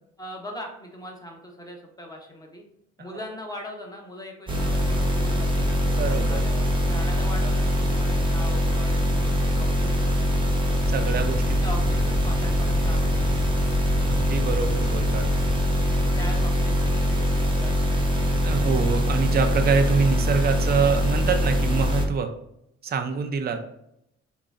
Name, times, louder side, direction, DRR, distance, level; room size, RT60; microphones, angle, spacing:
voice 1, 0.2-2.6 3.0-5.7 6.1-10.4 11.6-13.7 15.9-18.0, equal, 10° left, 1 dB, 0.9 m, -40 dB
sound 1, 4.5-22.0, equal, 15° right, 0.8 m, -23 dB
voice 2, 6.0-6.4 10.9-11.6 14.1-15.3 18.4-22.3 22.8-23.7, right 5 dB, 30° right, 5 dB, 0.5 m, -25 dB
sound 2, 10.4-15.6, left 1 dB, 70° left, 1.4 m, -35 dB
3.8 x 3.0 x 2.4 m, 0.78 s
cardioid pair, 90°, 30 cm